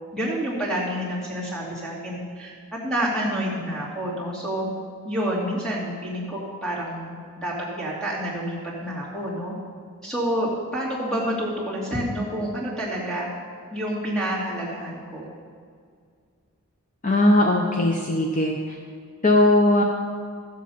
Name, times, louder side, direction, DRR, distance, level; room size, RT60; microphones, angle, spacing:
voice 1, 0.1-4.7 5.0-9.5 10.0-13.3 13.7-15.3, equal, 5° left, -6 dB, 2.6 m, -28 dB
voice 2, 17.0-18.8 19.2-19.8, left 1 dB, 35° left, 1 dB, 0.6 m, -19 dB
13.5 x 7.6 x 5.6 m, 2.2 s
head